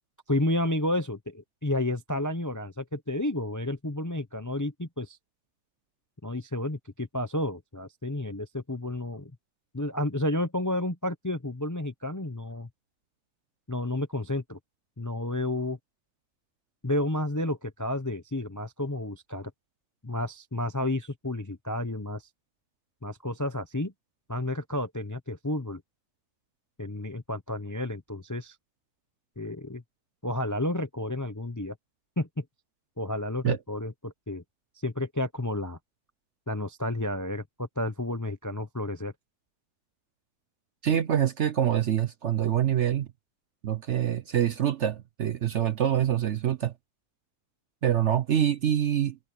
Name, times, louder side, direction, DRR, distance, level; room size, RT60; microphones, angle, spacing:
voice 1, 0.3-5.2 6.2-9.3 9.7-12.7 13.7-14.6 15.0-15.8 16.8-19.5 20.0-22.3 23.0-23.9 24.3-25.8 26.8-28.6 29.4-29.8 30.2-31.8 32.2-32.4 33.0-34.4 34.8-35.8 36.5-39.1, left 1 dB, 20° left, 0.5 m, -31 dB
voice 2, 40.8-43.1 43.6-46.7 47.8-49.2, right 10 dB, 60° right, 0.8 m, -25 dB
omnidirectional pair, 1.7 m